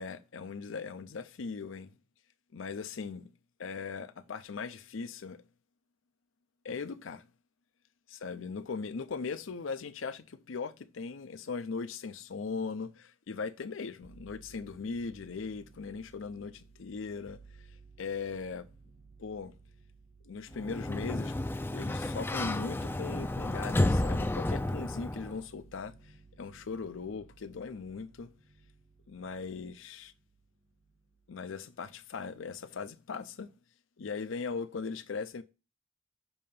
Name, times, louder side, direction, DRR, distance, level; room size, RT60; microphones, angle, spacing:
voice 1, 0.0-1.9 2.5-3.3 3.6-5.4 6.6-7.3 8.1-17.7 18.0-18.7 19.2-19.6 20.3-21.4 21.7-28.3 29.1-30.1 31.3-33.5 34.0-35.4, left 5 dB, 80° left, 0.5 m, -39 dB
sound 1, 14.0-31.4 31.8-32.6, right 4 dB, 55° right, 1.1 m, -58 dB
Sliding door, 20.5-25.4, left 1 dB, 10° left, 0.3 m, -31 dB
7.0 x 2.8 x 5.4 m
head